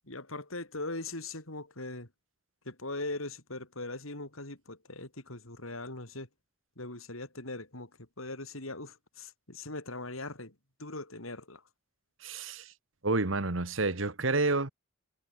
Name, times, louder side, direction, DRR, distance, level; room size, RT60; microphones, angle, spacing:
voice 1, 0.1-2.1 2.7-6.3 6.8-11.6, left 2 dB, 85° left, 6.9 m, -40 dB
voice 2, 12.2-12.7 13.0-14.7, right 3 dB, 70° right, 1.7 m, -29 dB
head